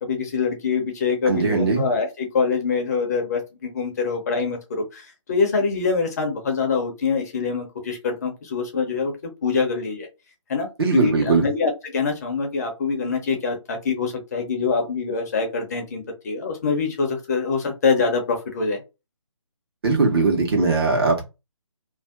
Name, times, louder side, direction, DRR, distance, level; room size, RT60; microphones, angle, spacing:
voice 1, 0.0-10.1 10.5-18.8, left 5 dB, 30° left, 0.7 m, -25 dB
voice 2, 1.2-1.8 10.8-11.5 19.8-21.2, right 3 dB, 50° right, 1.1 m, -20 dB
2.6 x 2.1 x 3.4 m
figure-of-eight pair, 155°, 17 cm